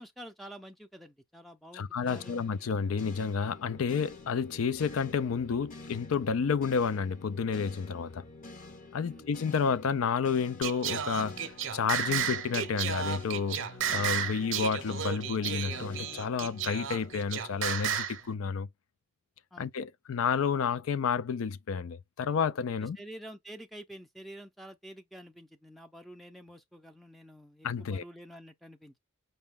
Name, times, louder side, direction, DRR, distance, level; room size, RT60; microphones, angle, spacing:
voice 1, 0.0-2.7 9.0-9.3 19.5-19.7 22.8-29.0, right 1 dB, ahead, 0.4 m, -48 dB
voice 2, 1.7-8.2 8.9-11.4 11.7-13.6 13.9-18.7 19.6-23.0 27.6-28.0, left 6 dB, 80° left, 0.4 m, -30 dB
sound 1, 2.1-18.3, left 3 dB, 40° left, 0.8 m, -49 dB
Singing, 10.6-18.2, right 8 dB, 60° right, 0.7 m, -33 dB
5.3 x 2.2 x 3.5 m
head